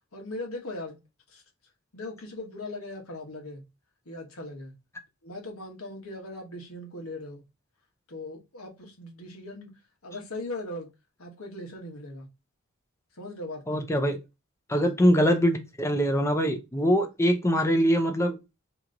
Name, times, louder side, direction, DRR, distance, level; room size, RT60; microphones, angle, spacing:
voice 1, 0.1-1.0 1.3-1.4 1.9-3.6 4.0-4.7 5.2-7.4 8.1-9.7 10.0-10.9 11.2-12.3 13.1-13.9 14.8-15.0, left 2 dB, 80° left, 1.4 m, -39 dB
voice 2, 13.7-14.2 14.7-18.4, equal, 15° left, 0.6 m, -23 dB
3.0 x 2.9 x 3.7 m
head